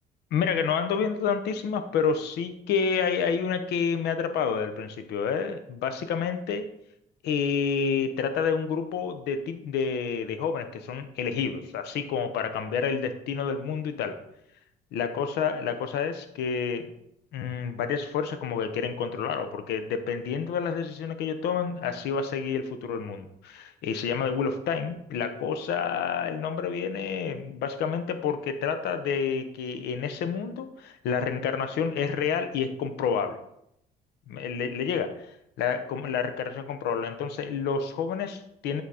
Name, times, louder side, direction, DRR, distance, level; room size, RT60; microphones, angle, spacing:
voice 1, 0.3-6.7 7.2-14.2 14.9-16.9 17.3-33.4 34.3-35.2 35.6-38.8, left 6 dB, 80° left, 9 dB, 0.8 m, -29 dB
8.2 x 4.0 x 4.9 m, 0.78 s
cardioid pair, 110°, 17 cm